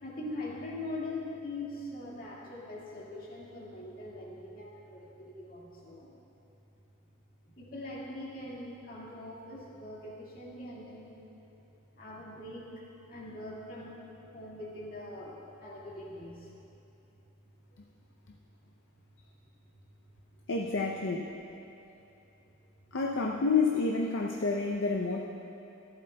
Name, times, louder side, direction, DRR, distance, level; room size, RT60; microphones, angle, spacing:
voice 1, 0.0-6.1 7.5-11.2 11.9-14.0 14.3-16.5 17.9-18.0 22.4-22.5 22.8-22.9, left 2 dB, 40° left, -6 dB, 1.9 m, -42 dB
voice 2, 20.5-21.3 22.9-25.3, left 4 dB, 60° left, 0 dB, 0.6 m, -29 dB
15.0 x 11.5 x 2.2 m, 2.9 s
head